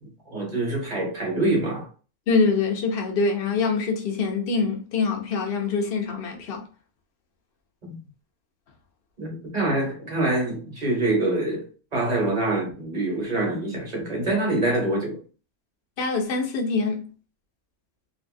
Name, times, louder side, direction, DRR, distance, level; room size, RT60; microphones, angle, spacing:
voice 1, 0.0-1.9 7.9-8.1 9.2-15.2, right 2 dB, 30° right, 1.1 m, -25 dB
voice 2, 2.3-6.7 16.0-17.1, left 4 dB, 50° left, 0.8 m, -24 dB
2.8 x 2.7 x 2.6 m
omnidirectional pair, 1.5 m